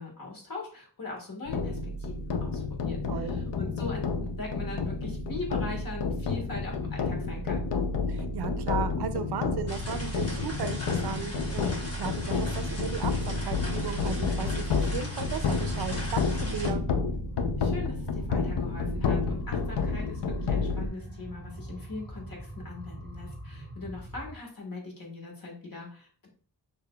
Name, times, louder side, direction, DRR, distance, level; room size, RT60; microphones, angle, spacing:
voice 1, 0.0-7.7 17.6-26.3, left 3 dB, 55° left, -1 dB, 1.6 m, -41 dB
sound 1, 1.5-20.9, left 4 dB, 70° left, 0.6 m, -30 dB
voice 2, 3.1-3.4 8.1-16.8, right 7 dB, 65° right, 11 dB, 0.5 m, -36 dB
sound 2, 9.4-24.4, right 1 dB, 15° left, 1.9 m, -43 dB
sound 3, 9.7-16.7, left 1 dB, 35° left, 1.1 m, -41 dB
6.6 x 2.7 x 2.2 m, 0.43 s
wide cardioid pair, 100°, 42 cm